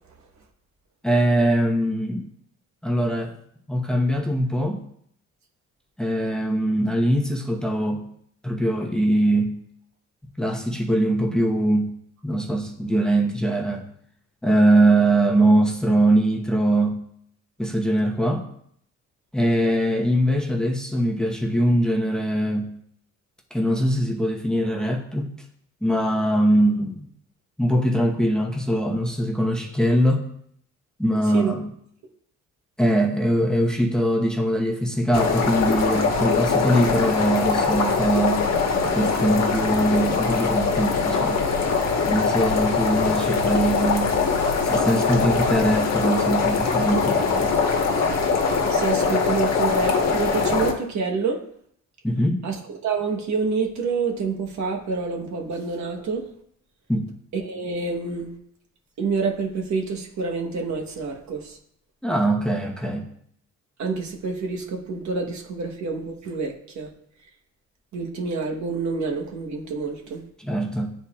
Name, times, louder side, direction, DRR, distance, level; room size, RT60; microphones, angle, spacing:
voice 1, 1.0-2.3 2.8-3.3 3.7-4.8 6.0-8.0 8.4-9.5 10.4-11.9 12.2-13.8 14.4-17.0 17.6-18.5 19.3-22.7 23.5-25.3 25.8-27.1 27.6-30.2 31.0-31.7 32.8-38.4 38.9-41.5 42.1-44.2 44.6-47.6 52.0-52.4 56.9-57.1 62.0-63.1 70.4-70.9, right 1 dB, ahead, 0 dB, 1.0 m, -22 dB
sound 1, 35.1-50.7, left 4 dB, 60° left, 1.3 m, -22 dB
voice 2, 48.7-51.5 52.4-56.3 57.3-58.4 59.0-61.6 63.8-66.9 67.9-70.2, right 4 dB, 70° right, 1 dB, 1.2 m, -27 dB
9.7 x 4.2 x 2.4 m, 0.68 s
cardioid pair, 90°, 30 cm